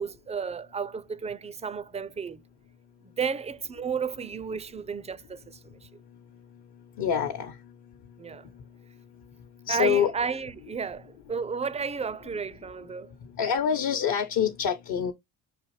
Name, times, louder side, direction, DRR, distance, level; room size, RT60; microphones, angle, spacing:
voice 1, 0.0-2.4 3.0-5.9 8.2-8.5 9.7-13.1, right 6 dB, 15° right, 0.4 m, -33 dB
voice 2, 7.0-7.5 9.7-10.1 13.4-15.1, left 8 dB, 60° left, 0.9 m, -25 dB
5.8 x 2.6 x 3.1 m
hypercardioid pair, 55°, 43 cm